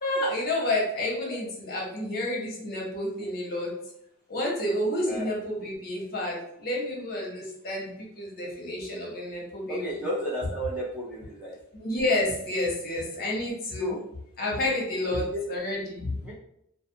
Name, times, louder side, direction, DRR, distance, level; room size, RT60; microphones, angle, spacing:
voice 1, 0.0-3.8 4.3-10.0 11.7-14.0 14.4-16.2, left 1 dB, 45° left, -3 dB, 0.9 m, -30 dB
voice 2, 9.7-11.6 13.8-14.0 15.0-15.4 16.2-16.3, equal, 5° right, -6 dB, 0.5 m, -33 dB
2.4 x 2.4 x 2.7 m, 0.76 s
head